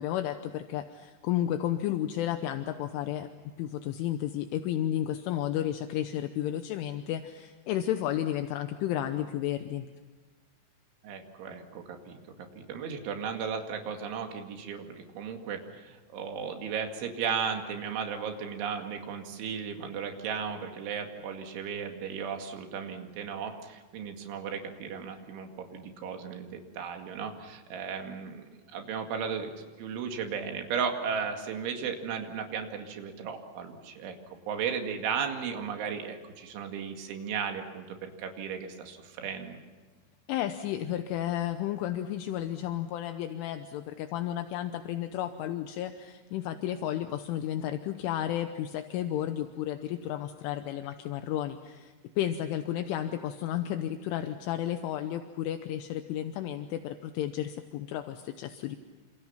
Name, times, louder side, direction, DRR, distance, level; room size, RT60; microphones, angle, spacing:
voice 1, 0.0-3.3 3.6-9.9 40.3-58.8, left 11 dB, 80° left, 8 dB, 3.3 m, -32 dB
voice 2, 11.0-12.2 12.6-29.5 29.8-39.6, right 6 dB, 70° right, 4 dB, 4.5 m, -35 dB
28.5 x 27.0 x 5.8 m, 1.3 s
omnidirectional pair, 5.8 m